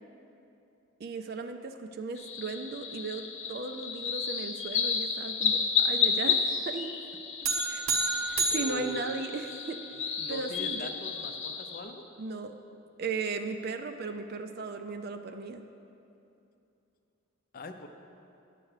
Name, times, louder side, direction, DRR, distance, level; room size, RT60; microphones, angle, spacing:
voice 1, 1.0-6.4 6.7-6.9 7.7-7.9 8.3-10.9 12.2-12.5 13.0-15.6, right 3 dB, 45° right, 7 dB, 0.4 m, -36 dB
sound 1, 2.2-11.8, left 6 dB, 60° left, 0.9 m, -32 dB
sound 2, 7.4-9.9, right 3 dB, 70° right, 0.9 m, -31 dB
voice 2, 8.5-9.4 9.9-12.1 17.5-17.9, left 1 dB, 40° left, 6 dB, 0.5 m, -42 dB
9.8 x 7.7 x 4.8 m, 2.8 s
head